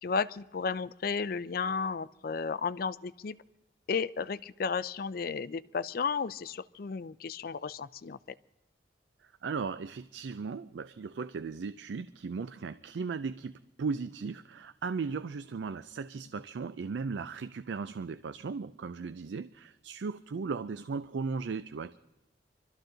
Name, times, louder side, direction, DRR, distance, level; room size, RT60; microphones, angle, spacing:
voice 1, 0.0-3.4 3.9-8.4, left 5 dB, 55° left, 16 dB, 0.4 m, -33 dB
voice 2, 9.2-13.5 13.8-22.0, right 5 dB, 85° right, 13 dB, 0.4 m, -37 dB
24.0 x 13.0 x 3.9 m, 0.96 s
head